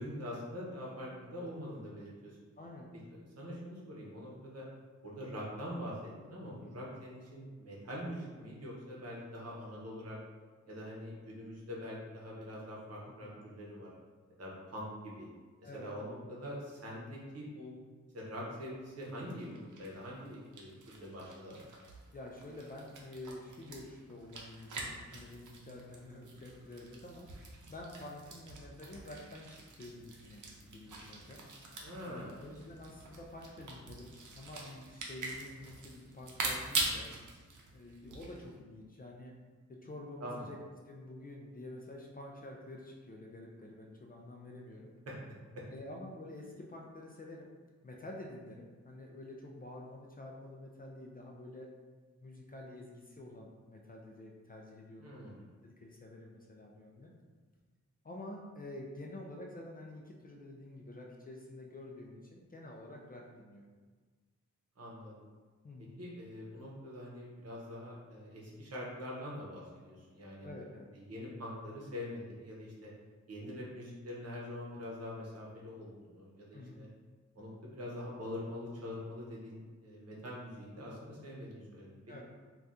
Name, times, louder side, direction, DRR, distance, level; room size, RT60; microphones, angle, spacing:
voice 1, 0.0-2.4 3.1-4.6 5.0-10.2 10.7-13.9 14.4-15.3 15.6-17.7 18.1-21.6 31.8-32.4 40.2-40.5 45.1-45.2 45.5-45.6 55.0-55.4 64.8-65.2 66.0-70.5 71.1-72.9 73.3-76.9 77.4-82.2, left 1 dB, 55° right, -5 dB, 0.8 m, -44 dB
voice 2, 2.6-2.9 6.5-6.8 13.2-13.3 15.6-15.9 22.1-31.4 32.1-37.1 37.7-39.3 39.7-40.6 40.9-44.9 45.7-47.5 47.8-51.7 52.2-55.1 55.6-57.1 58.0-63.7 65.6-66.0 70.4-70.9 76.5-76.9 82.1-82.2, left 1 dB, 30° left, -1 dB, 0.3 m, -48 dB
sound 1, 19.0-19.1 19.4-38.6, right 3 dB, 85° right, 0.6 m, -44 dB
2.6 x 2.3 x 3.5 m, 1.4 s
wide cardioid pair, 115°, 30 cm